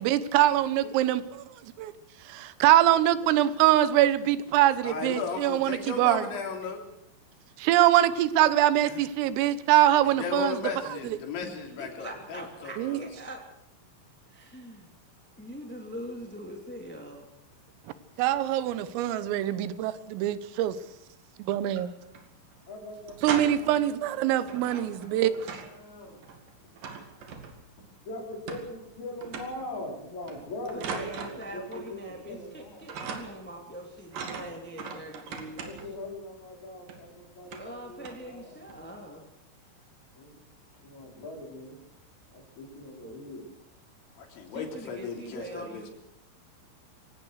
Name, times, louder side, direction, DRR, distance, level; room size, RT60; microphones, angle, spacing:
voice 1, 0.0-1.9 2.3-6.3 7.6-10.6 11.1-11.2 12.8-13.0 18.2-20.8 21.4-21.9 23.2-25.3, right 13 dB, 85° right, 14 dB, 3.8 m, -23 dB
voice 2, 4.8-6.8 8.9-9.0 10.0-13.1 44.2-45.9, left 5 dB, 65° left, 3 dB, 5.6 m, -35 dB
voice 3, 11.4-13.4 14.3-14.9 15.4-17.3 30.7-35.6 37.6-39.2 44.5-45.9, equal, 5° left, 2 dB, 1.2 m, -42 dB
sound 1, 21.5-22.2 22.5-22.6 22.9-23.8 24.5-25.8 26.1-27.8 28.5-28.9 29.2-29.7 30.3-31.9 32.2-32.6 32.9-33.5 34.1-36.0 36.9-37.0 37.4-37.8 38.0-38.3 38.7-38.9, right 5 dB, 50° right, 3.2 m, -40 dB
voice 4, 22.7-26.2 28.0-33.0 35.6-38.6 40.1-40.4 40.8-41.8 42.3-43.5, left 1 dB, 35° left, 1 dB, 5.8 m, -42 dB
25.5 x 18.0 x 6.5 m, 0.77 s
omnidirectional pair, 5.8 m